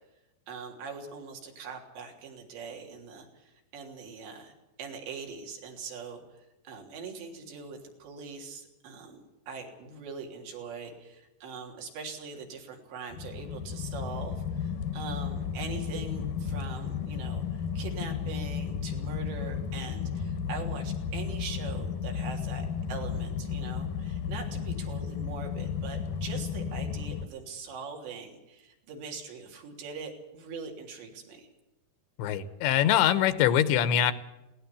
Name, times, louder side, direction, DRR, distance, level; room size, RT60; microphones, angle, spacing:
voice 1, 0.5-4.5 4.8-6.2 6.6-31.5, right 5 dB, 80° right, 2 dB, 5.6 m, -42 dB
sound 1, 13.1-27.3, left 7 dB, 70° left, 2.1 m, -33 dB
voice 2, 32.2-34.1, left 10 dB, 85° left, 13 dB, 3.5 m, -23 dB
20.5 x 18.5 x 8.5 m, 0.98 s
omnidirectional pair, 5.0 m